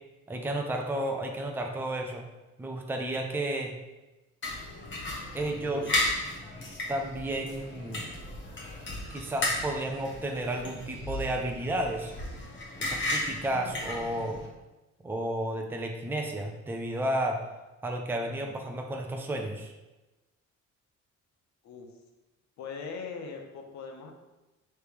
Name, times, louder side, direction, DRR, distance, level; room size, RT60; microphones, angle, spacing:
voice 1, 0.3-2.3 2.6-3.7 5.3-6.0 6.9-8.0 9.1-12.1 12.8-14.4 15.0-17.4 17.8-19.7, right 1 dB, 5° right, 2 dB, 0.5 m, -32 dB
sound 1, 4.4-14.5, left 1 dB, 40° left, 1.3 m, -34 dB
voice 2, 5.5-6.0 21.6-21.9 22.6-24.1, left 5 dB, 70° left, 3 dB, 0.8 m, -41 dB
3.4 x 3.3 x 4.7 m, 1.1 s
cardioid pair, 90°, 30 cm